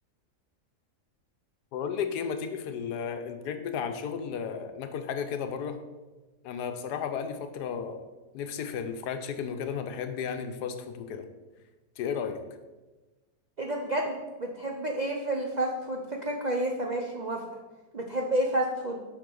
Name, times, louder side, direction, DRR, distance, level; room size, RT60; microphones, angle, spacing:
voice 1, 1.7-5.8 6.4-8.0 8.3-11.3 12.0-12.4, left 7 dB, 85° left, 7 dB, 1.3 m, -33 dB
voice 2, 13.6-17.4 17.9-19.0, right 1 dB, 70° right, 1 dB, 0.4 m, -30 dB
7.4 x 5.5 x 3.8 m, 1.2 s
omnidirectional pair, 1.7 m